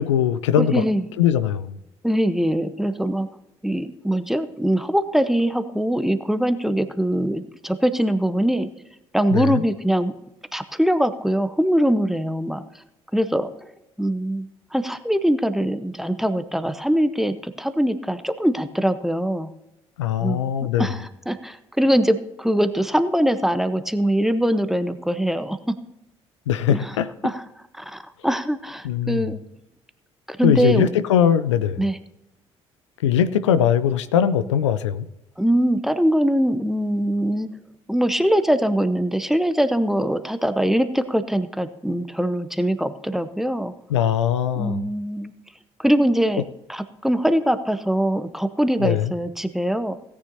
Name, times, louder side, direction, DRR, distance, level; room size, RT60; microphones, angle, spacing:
voice 1, 0.0-0.8 1.2-1.7 9.3-9.6 20.0-20.9 26.5-27.1 28.8-29.3 30.4-31.9 33.0-35.1 43.9-44.8 48.8-49.1, left 9 dB, 80° left, 13 dB, 0.4 m, -20 dB
voice 2, 0.5-1.0 2.0-3.3 3.6-8.7 9.1-10.1 10.5-12.6 13.1-13.5 14.0-19.5 20.2-20.5 20.8-25.6 26.7-26.9 27.2-27.5 27.7-29.4 30.3-30.9 31.8-32.0 35.4-37.5 37.9-43.7 44.5-45.3 45.8-46.4 46.7-49.9, equal, ahead, 11 dB, 0.9 m, -22 dB
17.0 x 9.6 x 2.8 m, 0.90 s
figure-of-eight pair, 45°, 15 cm